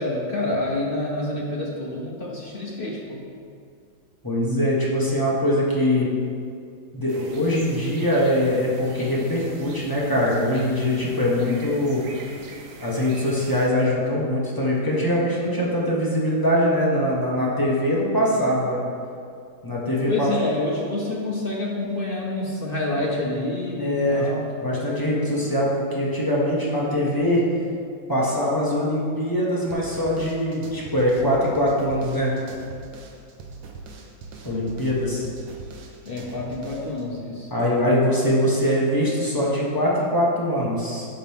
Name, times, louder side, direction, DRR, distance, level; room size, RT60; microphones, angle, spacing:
voice 1, 0.0-3.2 20.1-24.6 36.0-37.5, left 2 dB, 45° left, -3 dB, 0.7 m, -28 dB
voice 2, 4.2-6.1 6.9-12.0 12.8-18.8 19.6-20.3 23.8-24.3 24.6-27.4 28.1-32.4 34.4-35.3 37.5-41.1, equal, 15° left, -6 dB, 1.1 m, -22 dB
sound 1, 7.1-13.7, right 3 dB, 55° right, 0.9 m, -43 dB
sound 2, 29.7-37.0, right 3 dB, 75° right, 1.5 m, -41 dB
10.5 x 6.3 x 3.6 m, 2.4 s
omnidirectional pair, 2.1 m